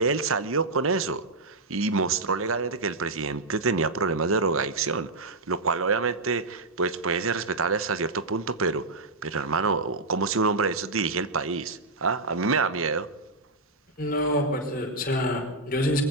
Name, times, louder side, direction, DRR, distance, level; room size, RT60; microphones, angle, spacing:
voice 1, 0.0-13.1, right 4 dB, 70° right, 1.1 m, -27 dB
voice 2, 14.0-16.0, left 1 dB, 40° left, 4.8 m, -26 dB
22.5 x 15.0 x 8.1 m
head